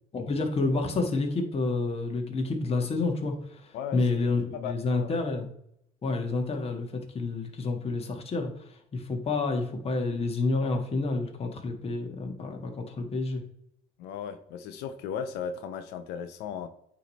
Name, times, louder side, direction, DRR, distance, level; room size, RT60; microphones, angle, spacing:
voice 1, 0.1-5.5 6.0-6.9 7.1-13.4, left 3 dB, 35° left, 3 dB, 1.6 m, -29 dB
voice 2, 4.5-5.2 14.0-16.7, left 7 dB, 90° left, 7 dB, 0.6 m, -36 dB
9.2 x 3.2 x 4.1 m, 0.73 s
cardioid pair, 110°, 17 cm